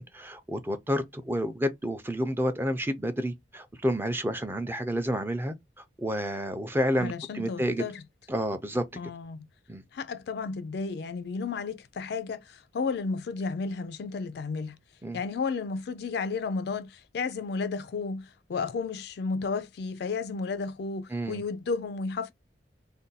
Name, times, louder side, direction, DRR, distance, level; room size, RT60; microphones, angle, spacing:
voice 1, 0.0-7.8 8.3-8.8 9.7-9.8 15.0-15.2 21.1-21.4, equal, 10° right, 0.4 m, -30 dB
voice 2, 7.0-8.0 9.0-9.5 9.9-14.8 15.1-22.3, left 4 dB, 60° left, 0.3 m, -33 dB
2.6 x 2.2 x 3.9 m
head